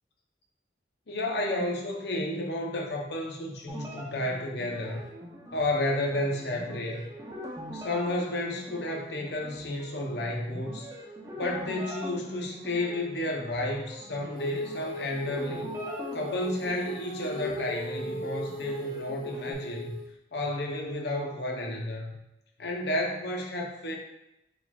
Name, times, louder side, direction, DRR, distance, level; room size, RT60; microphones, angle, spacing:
voice 1, 1.1-5.0 5.5-7.1 7.7-10.9 11.3-15.7 16.1-20.0 20.3-22.2 22.6-24.0, left 1 dB, 70° left, 0 dB, 0.8 m, -31 dB
sound 1, 3.7-19.5, equal, 20° right, 0.6 m, -43 dB
Female singing, 14.4-20.1, left 1 dB, 25° left, 1.0 m, -37 dB
4.3 x 4.0 x 2.3 m, 0.87 s
head